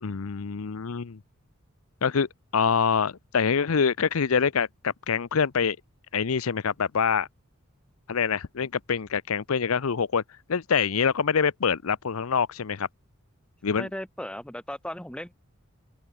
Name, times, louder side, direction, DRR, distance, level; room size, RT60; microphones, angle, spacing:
voice 1, 0.0-1.2 2.0-2.3 2.5-5.8 6.1-7.3 8.1-10.2 10.5-12.9 13.6-13.9, left 6 dB, 80° left, 0.7 m, -25 dB
voice 2, 13.8-15.3, left 1 dB, 5° left, 3.4 m, -36 dB
open air
head